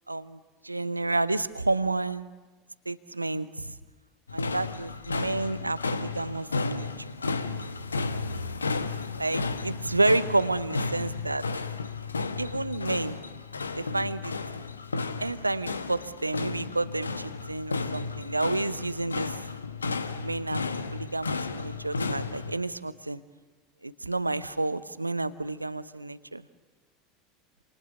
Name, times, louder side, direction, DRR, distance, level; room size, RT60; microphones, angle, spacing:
voice 1, 0.1-0.4 0.6-2.3 2.9-3.8 4.3-6.9 9.2-11.5 12.4-13.2 13.7-14.3 15.2-19.4 20.2-20.6 20.9-23.2 23.8-26.4, right 2 dB, 85° right, 15 dB, 0.8 m, -30 dB
sound 1, 4.3-22.5, left 4 dB, 80° left, 1.1 m, -33 dB
28.5 x 28.0 x 7.0 m, 1.3 s
figure-of-eight pair, 75°, 0 cm